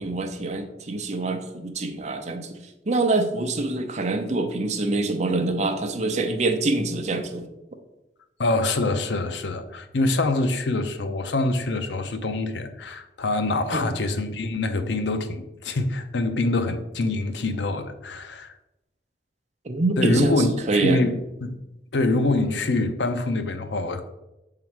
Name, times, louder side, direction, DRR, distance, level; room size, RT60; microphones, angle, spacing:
voice 1, 0.0-2.6 2.9-7.5 13.7-13.9 19.6-20.3 20.7-21.0, right 2 dB, 40° right, 0.7 m, -25 dB
voice 2, 8.4-18.5 20.0-21.5 21.9-24.1, left 2 dB, 85° left, 0.6 m, -25 dB
7.1 x 3.8 x 4.5 m
head